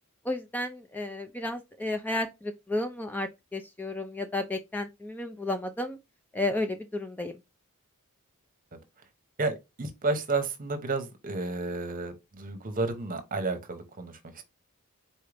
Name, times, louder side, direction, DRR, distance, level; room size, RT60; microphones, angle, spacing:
voice 1, 0.3-6.0 6.3-7.3, left 2 dB, 10° left, 0.4 m, -32 dB
voice 2, 9.4-14.4, right 3 dB, 40° right, 0.9 m, -32 dB
4.3 x 3.7 x 3.3 m
head